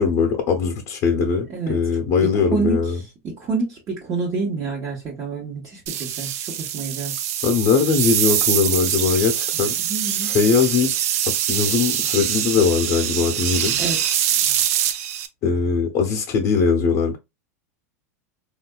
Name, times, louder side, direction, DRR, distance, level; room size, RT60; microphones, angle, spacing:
voice 1, 0.0-3.0 7.4-9.7 10.3-10.9 11.5-13.7 15.4-17.2, left 5 dB, 45° left, 0.8 m, -20 dB
voice 2, 2.1-2.8 3.2-6.3 6.6-7.1 9.8-10.3 13.8-14.0, right 4 dB, 35° right, 1.1 m, -27 dB
sound 1, 5.9-15.3, right 10 dB, 70° right, 0.5 m, -24 dB
3.6 x 2.5 x 2.2 m
supercardioid pair, 125°, 8 cm